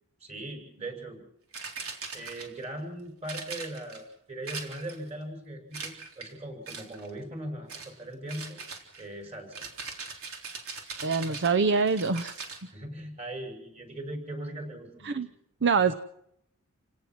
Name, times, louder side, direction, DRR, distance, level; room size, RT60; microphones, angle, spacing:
voice 1, 0.2-1.2 2.1-8.6 9.0-9.6 12.7-15.3, right 1 dB, 30° right, 4 dB, 6.2 m, -39 dB
sound 1, 1.5-2.7 3.3-4.0 4.5-5.1 5.7-6.3 6.7-7.1 7.7-7.9 8.3-12.6, right 4 dB, 70° right, 3.9 m, -40 dB
voice 2, 11.0-12.4 15.0-15.3 15.6-16.0, right 5 dB, 55° right, 11 dB, 0.8 m, -24 dB
29.0 x 18.0 x 6.1 m, 0.74 s
head